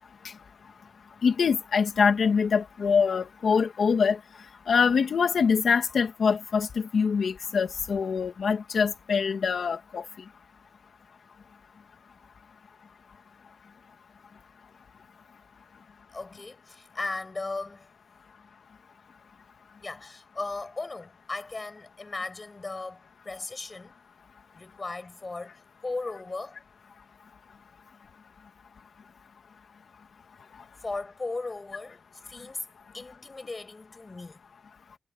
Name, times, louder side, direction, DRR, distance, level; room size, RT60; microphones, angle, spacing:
voice 1, 1.2-4.2 4.7-6.7 6.9-10.1, left 6 dB, 80° left, 2.4 m, -24 dB
voice 2, 16.1-17.9 19.8-24.0 24.5-26.6 30.8-32.7 32.9-34.4, left 3 dB, 30° left, 7.8 m, -37 dB
wide cardioid pair, 125°, 0 cm